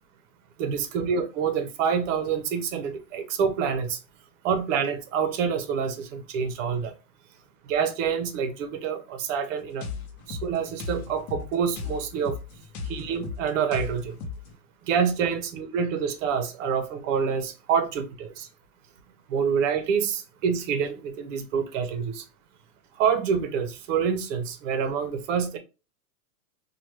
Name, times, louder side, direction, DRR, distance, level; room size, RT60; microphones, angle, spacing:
voice 1, 0.6-4.0 4.4-6.9 7.7-9.8 10.3-12.4 12.8-14.2 14.9-18.5 19.3-22.2 23.0-25.6, right 6 dB, 55° right, 0.7 m, -27 dB
sound 1, 9.8-14.5, left 5 dB, 45° left, 0.7 m, -36 dB
2.9 x 2.2 x 3.1 m
supercardioid pair, 160°, 46 cm